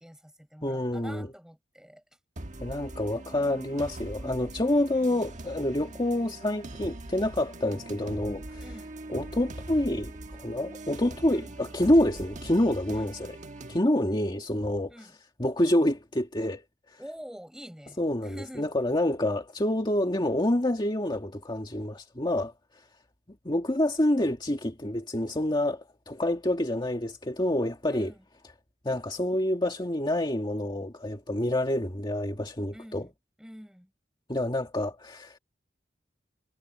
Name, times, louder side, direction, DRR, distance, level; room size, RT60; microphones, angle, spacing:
voice 1, 0.0-2.0 4.9-5.3 8.6-8.9 11.3-11.6 12.9-13.1 14.9-15.2 17.0-18.7 27.9-28.2 32.7-33.1 33.4-33.9, equal, 5° right, 4.5 m, -47 dB
voice 2, 0.6-1.3 2.6-8.6 9.1-13.4 13.7-14.9 15.4-16.6 16.9-17.0 18.0-22.5 23.4-28.1 28.8-33.1 34.3-35.4, left 1 dB, 25° left, 2.0 m, -27 dB
sound 1, 2.4-13.8, right 1 dB, 40° right, 1.4 m, -42 dB
head